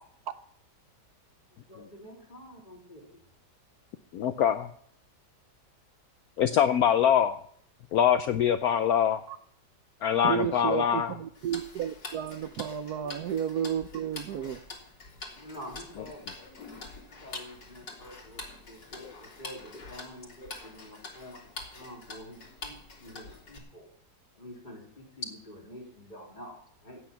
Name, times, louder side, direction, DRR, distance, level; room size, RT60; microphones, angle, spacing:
voice 1, 1.7-3.2 13.0-13.2 14.3-14.6 15.3-16.6 16.8-23.9 24.4-27.0, equal, 25° left, 3.7 m, -48 dB
voice 2, 4.1-4.7 6.4-7.4 7.9-9.2 10.0-11.1 13.4-13.5, left 9 dB, 65° left, 1.0 m, -24 dB
voice 3, 10.2-14.6, right 10 dB, 70° right, 1.1 m, -32 dB
Tick-tock, 11.4-23.6, left 3 dB, 80° left, 3.4 m, -45 dB
16.0 x 8.8 x 5.8 m
omnidirectional pair, 1.9 m